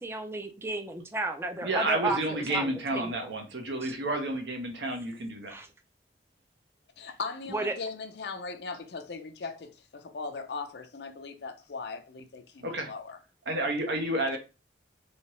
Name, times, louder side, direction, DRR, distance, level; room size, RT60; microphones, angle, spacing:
voice 1, 0.0-3.3 5.5-5.7 7.5-7.7, right 2 dB, 15° right, 0.4 m, -33 dB
voice 2, 1.6-5.5 12.6-12.9 13.5-14.4, right 1 dB, 85° right, 0.9 m, -30 dB
voice 3, 7.0-13.2 14.3-14.4, left 4 dB, 70° left, 0.5 m, -39 dB
3.1 x 2.8 x 3.0 m
head